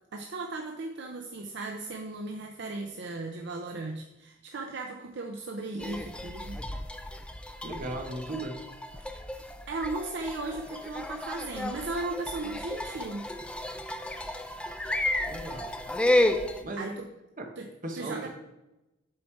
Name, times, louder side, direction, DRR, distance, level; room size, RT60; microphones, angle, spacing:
voice 1, 0.1-6.6 9.7-13.3 16.8-17.1 17.6-17.7 18.0-18.3, right 2 dB, 60° right, 3 dB, 0.5 m, -36 dB
sound 1, 5.8-16.6, left 1 dB, 5° left, 0.4 m, -32 dB
voice 2, 7.6-8.6 15.3-15.7 16.6-16.9 17.4-17.5 17.8-18.3, right 1 dB, 45° right, 2 dB, 1.1 m, -36 dB
7.8 x 4.2 x 4.6 m, 0.96 s
head